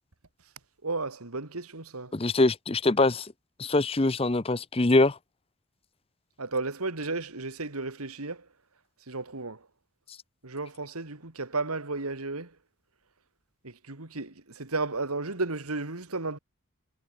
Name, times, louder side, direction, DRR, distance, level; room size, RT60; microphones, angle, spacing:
voice 1, 0.8-2.1 6.4-8.5 9.1-9.7 10.4-12.5 13.6-16.4, right 3 dB, 90° right, 2.4 m, -33 dB
voice 2, 2.1-3.3 3.6-5.2, left 2 dB, 25° left, 0.7 m, -23 dB
head